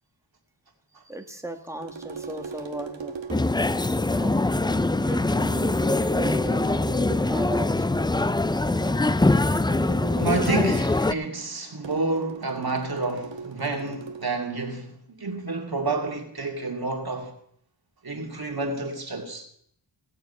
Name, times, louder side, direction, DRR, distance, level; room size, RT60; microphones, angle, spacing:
voice 1, 0.9-3.2 4.2-4.6 5.0-6.8 7.3-8.9, right 1 dB, 5° right, 1.7 m, -36 dB
sound 1, 1.8-3.7 5.1-7.4 8.8-10.8 11.8-14.3, right 5 dB, 75° right, 1.4 m, -40 dB
sound 2, 3.3-11.1, left 2 dB, 10° left, 0.4 m, -23 dB
voice 2, 10.1-17.3 18.0-19.5, right 3 dB, 50° right, 2.4 m, -29 dB
18.5 x 6.9 x 5.5 m
cardioid pair, 40°, 46 cm